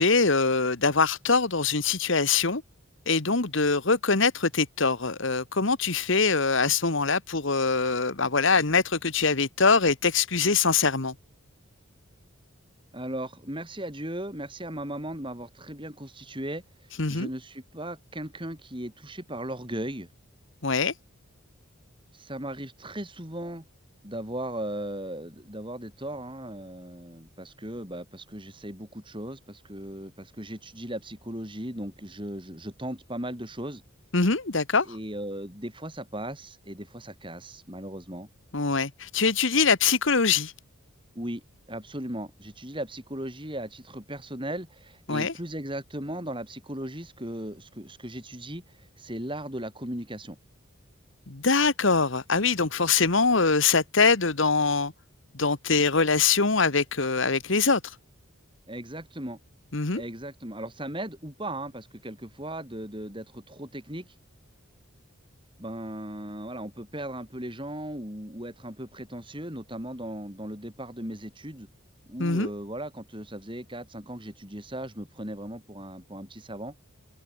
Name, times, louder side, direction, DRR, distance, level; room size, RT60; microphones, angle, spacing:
voice 1, 0.0-2.6 3.1-11.1 17.0-17.3 20.6-20.9 34.1-34.9 38.5-40.5 45.1-45.3 51.3-54.9 55.3-57.8 59.7-60.0 72.2-72.5, left 4 dB, 60° left, 1.5 m, -23 dB
voice 2, 12.9-16.6 17.1-20.1 22.1-23.6 24.0-33.8 34.8-38.3 41.1-41.4 41.7-50.4 58.7-59.4 59.9-64.1 65.6-71.7 72.1-76.7, right 1 dB, 25° right, 6.6 m, -37 dB
open air
head